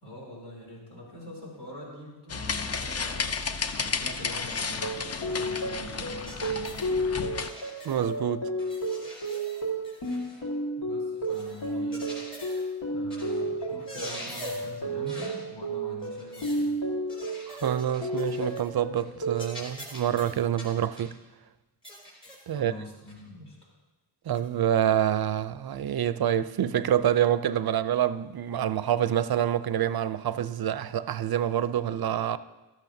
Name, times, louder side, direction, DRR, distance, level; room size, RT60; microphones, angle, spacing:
voice 1, 0.0-3.3 3.8-4.9 5.2-7.3 10.7-12.0 12.8-16.8 22.5-23.7, equal, 65° left, 3.4 m, -44 dB
sound 1, 2.3-7.5, left 5 dB, 35° left, 0.5 m, -32 dB
sound 2, 4.7-19.5, right 1 dB, 85° left, 1.9 m, -32 dB
sound 3, 6.2-6.9 7.4-8.2 8.6-10.5 11.2-12.7 13.1-13.4 13.7-14.7 15.0-15.4 16.0-16.7 17.1-18.7 19.0-19.1 19.3-21.2 21.8-22.5 23.1-23.2 24.3-24.5, equal, 10° left, 3.3 m, -44 dB
voice 2, 7.8-8.5 17.5-21.2 22.5-22.7 24.3-32.4, right 10 dB, 60° right, 0.5 m, -27 dB
13.5 x 12.0 x 2.7 m
wide cardioid pair, 85°, 43 cm